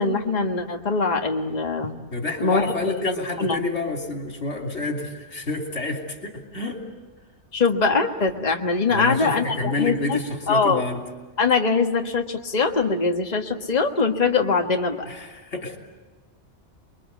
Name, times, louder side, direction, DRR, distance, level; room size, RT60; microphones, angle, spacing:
voice 1, 0.0-1.9 2.4-2.7 3.4-3.6 7.5-10.2 10.5-10.8 11.4-15.0, left 4 dB, 35° left, 3 dB, 1.6 m, -22 dB
voice 2, 2.1-6.8 8.9-11.0 15.1-15.8, left 2 dB, 80° left, 2 dB, 3.5 m, -29 dB
28.5 x 22.5 x 8.3 m, 1.3 s
omnidirectional pair, 1.2 m